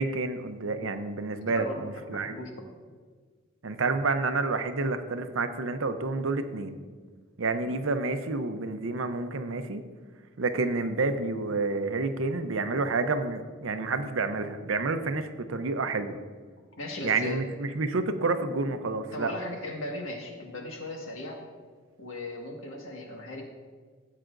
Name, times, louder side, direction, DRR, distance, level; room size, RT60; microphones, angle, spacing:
voice 1, 0.0-2.4 3.6-6.8 7.4-9.8 10.4-16.2 17.0-19.3, right 3 dB, 85° right, 9 dB, 0.7 m, -29 dB
voice 2, 1.4-2.7 7.6-7.8 16.8-17.5 19.1-21.4 22.0-23.4, left 2 dB, 85° left, 1 dB, 1.7 m, -37 dB
15.0 x 7.5 x 2.6 m, 1.5 s
head